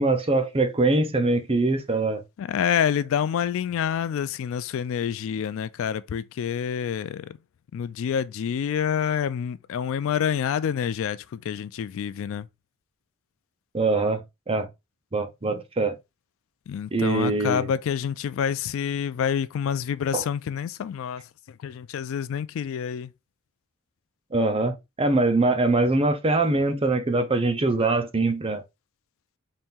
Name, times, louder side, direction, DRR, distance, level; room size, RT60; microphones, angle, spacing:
voice 1, 0.0-2.2 13.7-14.7 15.1-16.0 16.9-17.7 20.1-20.2 24.3-28.6, right 2 dB, 25° right, 0.7 m, -23 dB
voice 2, 2.4-7.4 7.7-12.5 16.7-23.1, left 8 dB, 65° left, 0.3 m, -27 dB
4.2 x 2.6 x 3.6 m
head